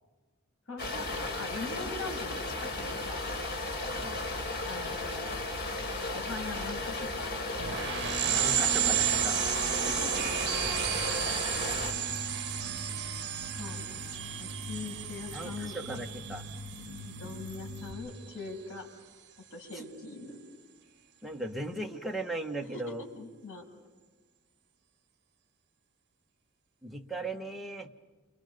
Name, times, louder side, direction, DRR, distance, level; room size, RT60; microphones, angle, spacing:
voice 1, 0.7-3.2 4.7-5.3 6.1-7.6 9.7-10.6 13.5-14.0 14.4-15.8 17.0-18.9 19.5-20.4 22.7-23.6, left 3 dB, 70° left, 0 dB, 7.3 m, -42 dB
sound 1, 0.8-11.9, left 2 dB, 50° left, 4.2 m, -35 dB
sound 2, 7.6-17.7, right 10 dB, 55° right, 1.6 m, -32 dB
voice 2, 8.3-9.4 15.3-16.4 19.7-19.8 21.2-23.0 26.8-27.9, right 1 dB, ahead, 5 dB, 1.7 m, -37 dB
sound 3, 10.7-17.9, left 1 dB, 15° left, 3.4 m, -44 dB
29.0 x 27.5 x 5.3 m, 1.3 s
head